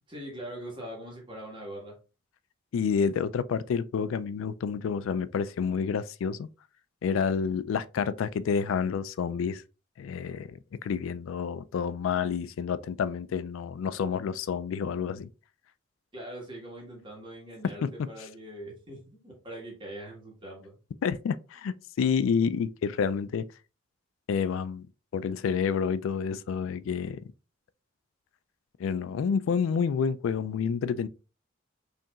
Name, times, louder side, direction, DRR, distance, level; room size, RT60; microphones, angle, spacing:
voice 1, 0.1-2.0 16.1-20.8, right 1 dB, 25° right, 1.4 m, -42 dB
voice 2, 2.7-6.5 7.0-9.6 10.0-15.3 17.8-17.9 21.0-23.4 24.3-24.8 25.1-27.2 28.8-31.1, left 6 dB, 85° left, 0.3 m, -29 dB
5.1 x 2.8 x 2.3 m
head